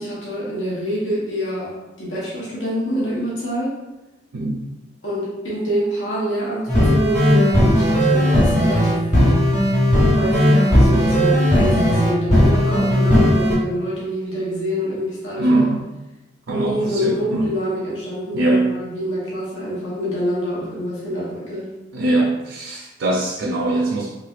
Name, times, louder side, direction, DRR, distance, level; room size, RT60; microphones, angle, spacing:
voice 1, 0.0-3.8 5.0-9.1 10.1-15.7 16.5-21.7, equal, 90° left, -6 dB, 1.0 m, -26 dB
voice 2, 4.3-4.7 15.4-15.9 16.5-17.5 18.3-18.8 21.9-24.1, right 2 dB, 70° right, 0 dB, 0.4 m, -21 dB
sound 1, 6.7-13.5, equal, 35° left, 1.3 m, -16 dB
3.3 x 3.2 x 2.4 m, 1.0 s
head